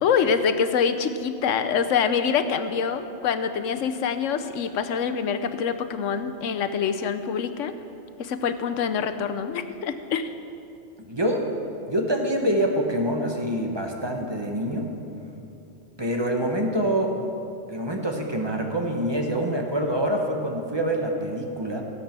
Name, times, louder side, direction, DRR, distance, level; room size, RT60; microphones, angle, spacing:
voice 1, 0.0-7.7 8.2-10.3, left 6 dB, 85° left, 9 dB, 1.1 m, -25 dB
voice 2, 11.0-11.5 11.9-14.9 16.0-17.2 17.7-21.8, right 1 dB, 20° right, 2 dB, 1.2 m, -26 dB
16.0 x 8.2 x 5.9 m, 2.7 s
omnidirectional pair, 1.3 m